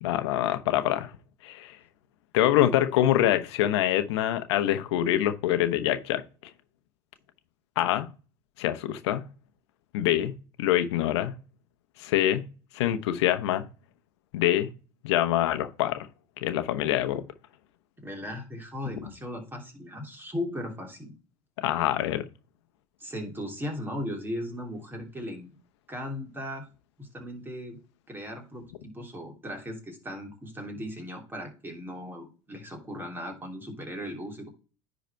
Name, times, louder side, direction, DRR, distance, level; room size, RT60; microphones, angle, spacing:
voice 1, 0.0-1.1 1.4-1.8 2.3-6.2 7.8-8.1 8.6-9.3 9.9-11.3 12.0-12.5 12.7-13.6 14.3-14.7 15.0-16.1 16.4-17.2 21.6-22.2, left 12 dB, 75° left, 1.0 m, -25 dB
voice 2, 18.0-21.1 23.0-25.5 25.9-26.7 27.0-27.8 28.1-34.5, left 1 dB, 15° right, 3.1 m, -37 dB
10.5 x 4.1 x 4.5 m
hypercardioid pair, 85°, 14 cm